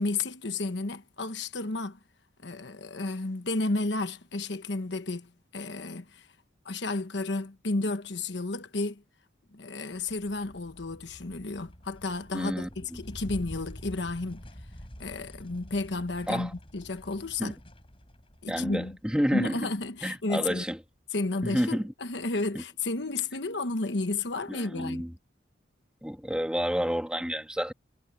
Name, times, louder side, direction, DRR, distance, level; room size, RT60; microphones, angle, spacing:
voice 1, 0.0-2.0 2.4-6.3 6.6-9.0 9.5-14.4 15.0-17.6 18.4-19.0 19.3-20.6 21.1-25.0, left 2 dB, 65° left, 1.2 m, -32 dB
sound 1, 9.9-20.5, equal, 30° left, 6.5 m, -48 dB
voice 2, 12.3-12.7 16.3-16.5 17.4-17.5 18.5-19.7 20.0-20.8 21.4-21.9 22.5-22.6 24.5-25.1 26.0-27.7, equal, 5° right, 2.1 m, -29 dB
head